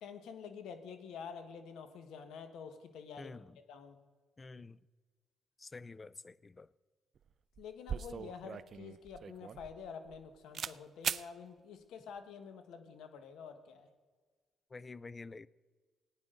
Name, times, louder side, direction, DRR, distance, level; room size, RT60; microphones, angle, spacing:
voice 1, 0.0-3.4 3.7-4.0 7.6-13.9, left 6 dB, 85° left, 1.3 m, -48 dB
voice 2, 3.2-3.5 4.4-4.8 5.6-6.7 14.7-15.5, left 3 dB, 25° left, 0.4 m, -48 dB
sound 1, 7.2-7.3 7.6-10.2 10.5-10.8 11.0-11.3, right 7 dB, 55° right, 0.4 m, -39 dB
18.5 x 9.8 x 3.9 m
cardioid pair, 90°, 0 cm